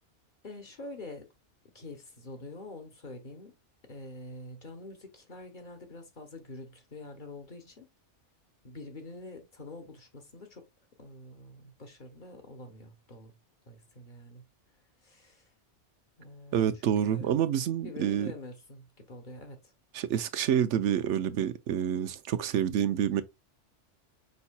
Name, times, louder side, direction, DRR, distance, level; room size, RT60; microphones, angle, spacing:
voice 1, 0.4-1.3 1.7-3.5 3.9-7.9 8.6-10.7 11.0-13.4 13.7-14.4 15.0-15.5 16.2-17.3 17.8-19.7, left 2 dB, 45° left, 1.3 m, -46 dB
voice 2, 16.5-18.3 19.9-23.2, right 9 dB, 85° right, 1.0 m, -28 dB
5.5 x 4.1 x 2.3 m
omnidirectional pair, 1.2 m